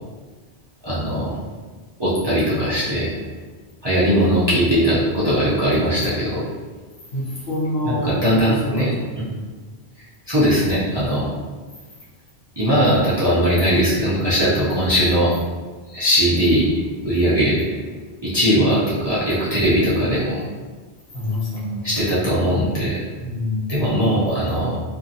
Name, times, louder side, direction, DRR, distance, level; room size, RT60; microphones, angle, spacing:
voice 1, 0.8-1.4 2.0-3.1 3.8-6.5 7.8-8.9 9.1-9.3 10.3-11.3 12.6-15.4 15.9-16.7 17.0-17.6 18.2-20.4 21.8-23.0 23.7-24.8, equal, 35° right, -10 dB, 0.4 m, -19 dB
voice 2, 7.1-9.1 21.1-21.9 23.2-23.8, left 1 dB, 70° left, -5 dB, 1.0 m, -26 dB
2.7 x 2.6 x 2.5 m, 1.4 s
omnidirectional pair, 1.1 m